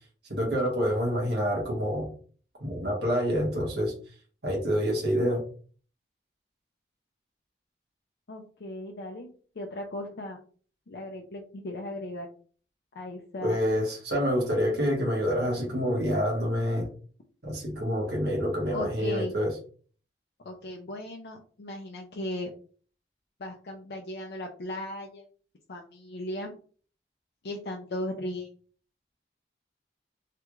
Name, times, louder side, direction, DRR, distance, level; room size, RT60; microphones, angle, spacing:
voice 1, 0.3-2.1 2.6-3.9 4.4-5.4 13.4-16.9 17.4-19.5, equal, 70° right, -2 dB, 1.3 m, -27 dB
voice 2, 8.3-10.4 10.9-12.3 12.9-13.6 18.7-19.3 20.4-22.5 23.4-25.2 25.7-26.5 27.4-28.5, left 1 dB, 65° left, 1 dB, 0.5 m, -37 dB
3.3 x 2.4 x 3.0 m, 0.43 s
head